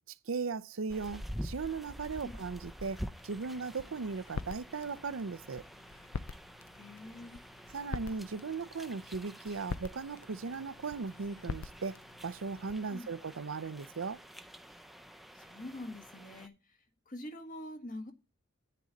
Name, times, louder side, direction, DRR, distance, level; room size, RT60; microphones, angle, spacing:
voice 1, 0.1-5.6 7.7-12.0 12.2-14.2, right 4 dB, 80° right, 0.6 m, -38 dB
sound 1, 0.9-16.5, equal, ahead, 0.5 m, -48 dB
sound 2, 3.1-12.9, left 4 dB, 80° left, 0.6 m, -45 dB
voice 2, 6.7-7.4 12.9-13.1 15.3-16.8 17.0-18.1, left 1 dB, 40° left, 1.5 m, -45 dB
9.6 x 9.1 x 4.0 m
head